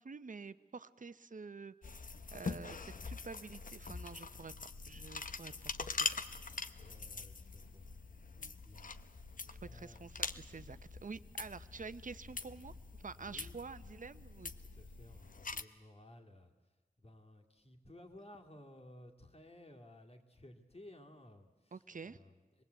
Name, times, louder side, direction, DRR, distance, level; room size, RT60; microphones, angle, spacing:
voice 1, 0.0-4.5 4.8-5.5 5.8-6.2 8.4-8.5 9.5-14.5 21.7-22.2, right 4 dB, 55° right, 13 dB, 0.8 m, -49 dB
sound 1, 1.8-15.6, left 4 dB, 60° left, 0.8 m, -44 dB
voice 2, 6.8-10.2 13.2-13.7 14.6-22.6, left 1 dB, 40° left, 3 dB, 2.4 m, -58 dB
26.5 x 20.0 x 8.2 m, 1.3 s
wide cardioid pair, 95°, 16 cm